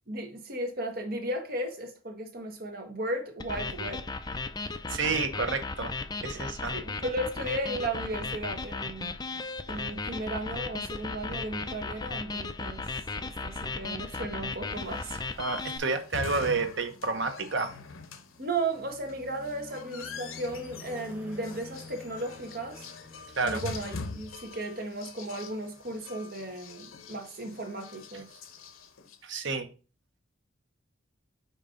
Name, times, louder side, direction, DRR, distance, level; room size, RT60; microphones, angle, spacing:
voice 1, 0.1-4.0 6.3-6.4 6.7-9.2 9.7-12.9 13.2-15.3 18.4-22.9 23.4-28.3, right 1 dB, 45° right, 1.4 m, -35 dB
sound 1, 3.4-15.8, left 3 dB, 20° left, 0.4 m, -36 dB
voice 2, 4.9-5.9 6.2-6.8 15.4-17.7 23.4-23.6 29.2-29.7, right 4 dB, 65° right, 1.1 m, -30 dB
sound 2, 14.9-29.2, left 4 dB, 90° left, 0.9 m, -44 dB
sound 3, 18.3-24.1, left 2 dB, 10° right, 0.9 m, -49 dB
5.4 x 4.5 x 3.8 m
head